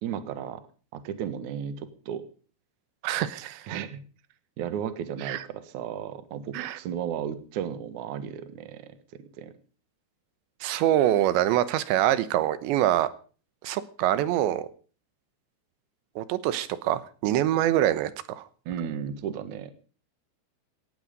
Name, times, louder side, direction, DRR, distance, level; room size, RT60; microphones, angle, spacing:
voice 1, 0.0-0.6 0.9-2.2 3.7-4.1 4.6-9.5 18.7-19.7, right 9 dB, 55° right, 12 dB, 2.4 m, -34 dB
voice 2, 3.0-3.7 5.2-5.4 6.5-6.8 10.6-13.1 13.6-14.7 16.2-18.4, right 12 dB, 85° right, 15 dB, 3.2 m, -25 dB
17.5 x 15.0 x 5.2 m, 0.39 s
omnidirectional pair, 5.1 m